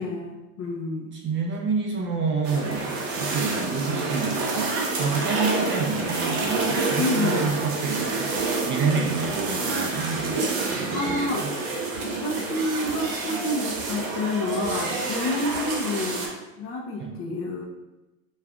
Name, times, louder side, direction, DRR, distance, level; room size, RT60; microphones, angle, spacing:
voice 1, 0.0-1.2 7.0-7.5 10.9-11.4 12.0-17.7, left 2 dB, 30° left, 1 dB, 0.5 m, -29 dB
voice 2, 1.1-4.7 5.0-11.5 17.0-17.2, right 4 dB, 30° right, 1 dB, 0.5 m, -28 dB
sound 1, 2.4-16.3, right 3 dB, 50° right, 1.0 m, -28 dB
5.2 x 2.3 x 2.3 m, 1.0 s
hypercardioid pair, 100°, 44 cm